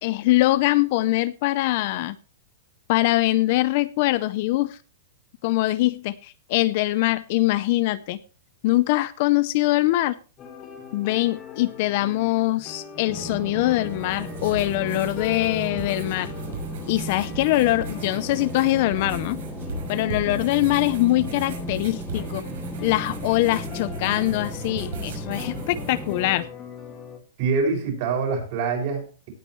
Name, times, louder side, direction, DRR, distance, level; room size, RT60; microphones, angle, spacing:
voice 1, 0.0-2.2 2.9-4.8 5.4-8.2 8.6-10.1 10.9-16.3 16.9-19.4 19.9-22.4 22.8-26.5, left 17 dB, 35° left, 15 dB, 0.6 m, -23 dB
sound 1, 10.4-27.2, left 7 dB, 20° left, 2.1 m, -40 dB
sound 2, 13.1-26.4, right 1 dB, 5° right, 2.9 m, -36 dB
sound 3, 13.7-26.4, right 3 dB, 65° right, 5.8 m, -38 dB
voice 2, 27.4-29.3, right 4 dB, 35° right, 3 dB, 5.7 m, -25 dB
18.0 x 8.7 x 3.1 m, 0.35 s
supercardioid pair, 175°, 0 cm